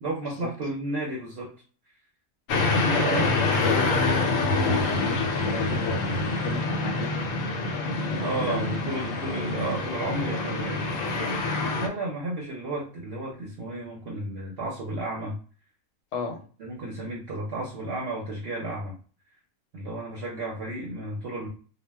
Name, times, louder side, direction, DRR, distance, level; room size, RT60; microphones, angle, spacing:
voice 1, 0.0-1.5 2.8-3.3 8.2-11.0 11.7-15.4 16.6-18.9 19.7-21.5, right 2 dB, 60° right, -2 dB, 0.8 m, -32 dB
sound 1, 2.5-11.9, left 3 dB, 90° left, 1.0 m, -26 dB
voice 2, 2.9-7.6 8.1-8.9 11.1-11.3 16.1-16.4, left 3 dB, 65° left, 4 dB, 0.9 m, -34 dB
2.3 x 2.1 x 3.3 m, 0.40 s
omnidirectional pair, 1.3 m